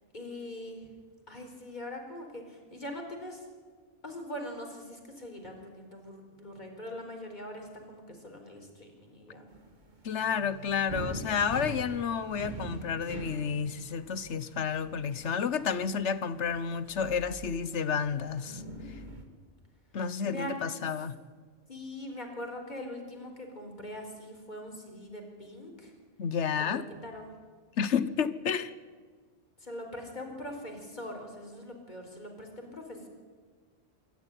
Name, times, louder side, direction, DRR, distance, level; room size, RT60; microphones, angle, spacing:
voice 1, 0.1-0.9 1.3-3.4 4.0-9.5 20.0-20.5 21.7-25.9 26.6-27.3 29.6-33.1, left 1 dB, 40° left, 4.5 m, -42 dB
sound 1, 9.5-19.2, right 2 dB, 40° right, 2.2 m, -44 dB
voice 2, 10.0-18.6 19.9-21.1 26.2-26.9 27.8-28.7, left 6 dB, 70° left, 1.2 m, -31 dB
26.0 x 13.5 x 10.0 m
omnidirectional pair, 1.2 m